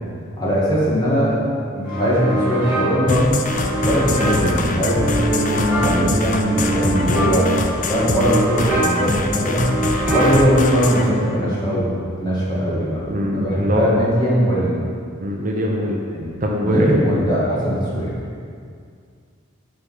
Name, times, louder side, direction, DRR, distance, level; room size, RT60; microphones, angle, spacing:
voice 1, 0.4-1.4 1.7-3.4 3.8-9.7 10.1-14.7 16.1-16.3 16.6-18.1, equal, 20° left, -8 dB, 2.1 m, -20 dB
sound 1, 1.9-11.4, right 1 dB, 10° right, 2.1 m, -24 dB
sound 2, 3.1-11.1, left 3 dB, 40° left, 0.5 m, -25 dB
voice 2, 13.1-13.9 15.2-16.0 16.4-16.9, equal, 40° right, -2 dB, 0.8 m, -22 dB
8.0 x 5.3 x 5.6 m, 2.2 s
head